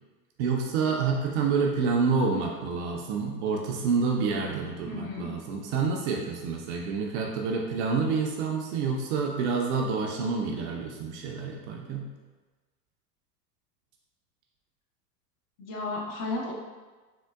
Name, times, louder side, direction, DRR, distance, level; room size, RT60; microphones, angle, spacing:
voice 1, 0.4-12.1, right 5 dB, 45° right, 0 dB, 0.4 m, -28 dB
voice 2, 4.9-5.3 15.6-16.5, left 3 dB, 40° left, -2 dB, 0.7 m, -33 dB
3.6 x 2.1 x 2.3 m, 1.3 s
hypercardioid pair, 90°, 49 cm